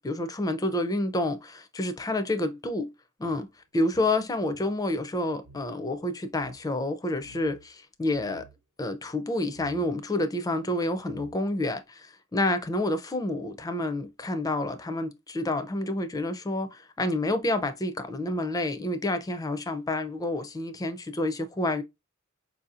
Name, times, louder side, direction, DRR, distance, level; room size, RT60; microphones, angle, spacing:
voice 1, 0.0-2.9 3.2-3.5 3.7-8.4 8.8-21.8, left 1 dB, 15° left, 0.4 m, -29 dB
sound 1, 3.2-5.7 6.0-6.1 6.3-6.6 7.2-7.7 8.0-8.6 9.5-9.9 10.7-10.8 11.1-11.7, right 4 dB, 85° right, 0.8 m, -52 dB
4.5 x 2.7 x 2.4 m
head